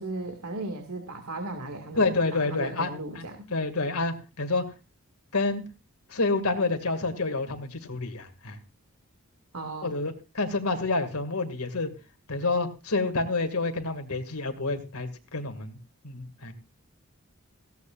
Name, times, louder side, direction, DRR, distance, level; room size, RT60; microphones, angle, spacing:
voice 1, 0.0-3.5 9.5-9.9, right 2 dB, 90° right, 4 dB, 2.2 m, -36 dB
voice 2, 1.9-3.2 3.5-4.6 5.3-5.6 6.1-8.6 9.8-11.9 12.3-15.8 16.0-16.5, left 3 dB, 90° left, 7 dB, 2.3 m, -28 dB
17.5 x 16.5 x 2.5 m, 0.29 s
head